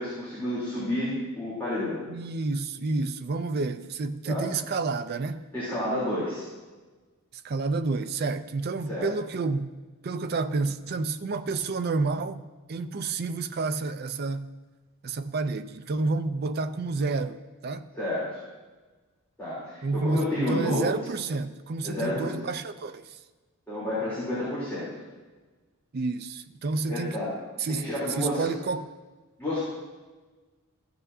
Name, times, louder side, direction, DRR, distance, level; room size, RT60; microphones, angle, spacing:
voice 1, 0.0-2.0 4.2-4.5 5.5-6.4 8.9-9.1 17.9-18.4 19.4-20.8 21.8-22.3 23.7-24.9 26.9-27.3 27.7-28.4 29.4-29.7, left 1 dB, 10° left, 3.4 m, -30 dB
voice 2, 2.1-5.4 7.4-9.7 10.0-12.4 12.7-14.5 15.0-17.8 19.8-23.2 25.9-27.2 27.6-27.8 28.2-28.9, right 3 dB, 45° right, 0.4 m, -29 dB
15.0 x 8.0 x 2.7 m
head